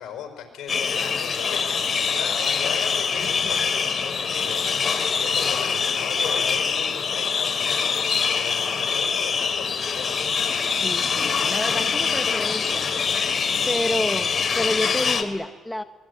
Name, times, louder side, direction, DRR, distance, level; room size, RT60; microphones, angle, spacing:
voice 1, 0.0-4.6 5.2-8.0 8.4-10.1 13.6-13.9, left 8 dB, 85° left, 5 dB, 5.2 m, -37 dB
sound 1, 0.7-15.2, left 6 dB, 45° left, 2.6 m, -24 dB
voice 2, 10.8-15.8, left 1 dB, 5° left, 9 dB, 1.0 m, -30 dB
24.5 x 20.0 x 10.0 m, 1.5 s
cardioid pair, 90°, 0 cm